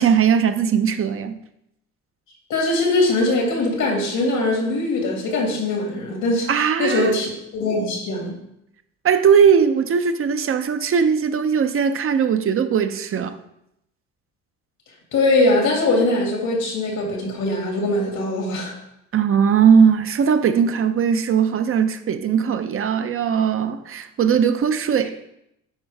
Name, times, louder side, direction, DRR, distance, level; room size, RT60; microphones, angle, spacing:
voice 1, 0.0-1.4 6.5-7.2 9.0-13.4 19.1-25.1, right 7 dB, 45° right, 0.6 m, -19 dB
voice 2, 2.5-6.5 6.8-8.4 15.1-18.7, left 2 dB, 85° left, 2.2 m, -21 dB
9.6 x 4.7 x 3.4 m
cardioid pair, 90°, 30 cm